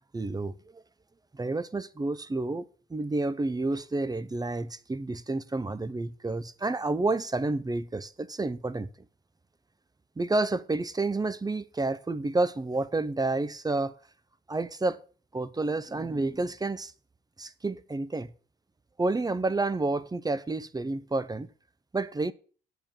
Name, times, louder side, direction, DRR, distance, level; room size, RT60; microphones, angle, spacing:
voice 1, 0.1-0.8 1.3-8.9 10.2-14.0 14.5-15.0 15.3-16.9 17.4-18.3 19.0-21.5 21.9-22.3, right 2 dB, 20° right, 0.8 m, -30 dB
8.8 x 6.9 x 7.5 m
supercardioid pair, 65°, 21 cm